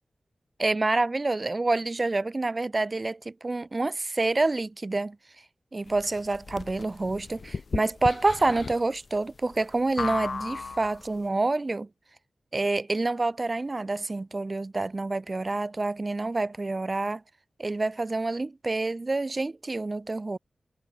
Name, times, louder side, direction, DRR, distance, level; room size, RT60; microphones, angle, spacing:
voice 1, 0.6-5.2 5.7-11.9 12.5-17.2 17.6-20.4, right 2 dB, 35° right, 4.1 m, -27 dB
sound 1, 5.9-11.2, left 4 dB, 60° left, 2.8 m, -35 dB
wide cardioid pair, 95°, 0 cm